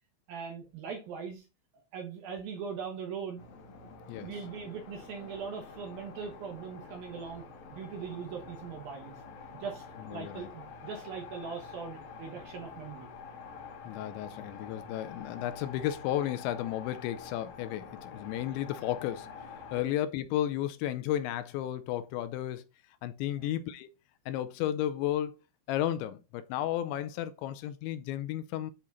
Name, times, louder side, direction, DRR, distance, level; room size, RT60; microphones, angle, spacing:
voice 1, 0.3-1.5 1.7-3.4 4.1-7.4 7.7-9.2 9.5-9.8 10.1-13.1 19.7-19.9 23.3-23.5, right 6 dB, 70° right, 2.4 m, -40 dB
sound 1, 3.4-19.8, left 5 dB, 65° left, 2.7 m, -47 dB
voice 2, 10.1-10.5 13.9-19.3 19.7-22.7 23.0-23.9 24.3-25.3 25.7-28.7, left 12 dB, 80° left, 2.8 m, -33 dB
9.9 x 4.4 x 4.0 m
omnidirectional pair, 5.5 m